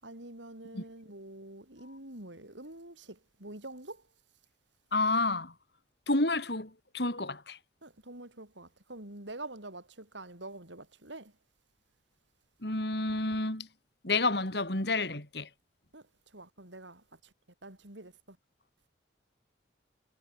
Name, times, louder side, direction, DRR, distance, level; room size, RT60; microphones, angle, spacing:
voice 1, 0.0-4.1 7.8-11.4 15.9-17.3 17.6-18.4, right 2 dB, 80° right, 6.1 m, -46 dB
voice 2, 4.9-5.5 6.1-7.6 12.6-13.7 14.0-15.5, left 2 dB, 60° left, 3.6 m, -30 dB
head